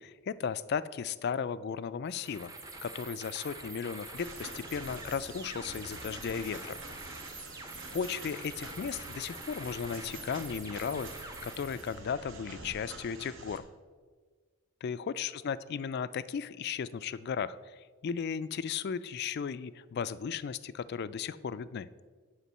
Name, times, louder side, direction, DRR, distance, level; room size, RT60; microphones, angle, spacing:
voice 1, 0.0-2.5 2.8-6.8 7.9-13.6 14.8-21.9, left 6 dB, 50° left, 16 dB, 0.3 m, -35 dB
sound 1, 2.1-12.0, right 2 dB, 15° right, 0.8 m, -46 dB
sound 2, 4.2-13.6, right 2 dB, 60° right, 1.3 m, -47 dB
8.3 x 5.0 x 7.3 m, 1.5 s
head